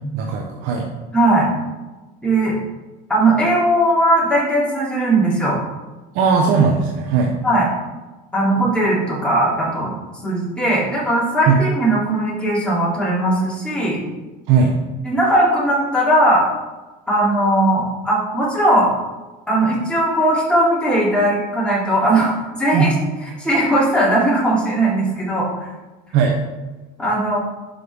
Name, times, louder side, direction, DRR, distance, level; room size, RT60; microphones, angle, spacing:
voice 1, 0.1-0.9 6.1-7.3 11.5-11.6 14.5-14.8 22.7-22.9 26.1-26.4, right 5 dB, 70° right, 1 dB, 1.0 m, -17 dB
voice 2, 1.1-1.5 2.2-2.5 3.1-5.6 7.4-7.7 8.3-10.0 10.2-14.0 15.0-16.5 17.1-18.9 19.5-22.9 23.4-25.7 27.0-27.4, right 1 dB, 5° left, -7 dB, 3.0 m, -18 dB
11.0 x 5.5 x 3.6 m, 1.2 s
cardioid pair, 135°, 20 cm